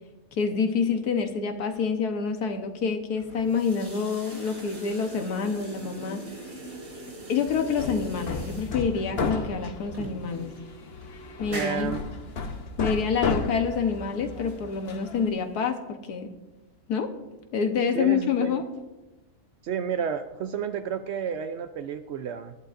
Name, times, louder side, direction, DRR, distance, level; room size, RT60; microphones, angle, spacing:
voice 1, 0.3-6.2 7.3-10.5 11.4-11.9 12.8-16.3 16.9-17.1 17.5-18.6, left 5 dB, 80° left, 5 dB, 1.5 m, -27 dB
sound 1, 3.2-15.6, right 1 dB, 55° right, 4.1 m, -43 dB
Hammer, 7.5-15.3, left 4 dB, 45° left, 1.0 m, -34 dB
voice 2, 11.5-12.0 17.9-18.6 19.6-22.6, right 7 dB, 70° right, 8 dB, 0.6 m, -31 dB
19.5 x 11.5 x 2.5 m, 1.1 s
omnidirectional pair, 1.7 m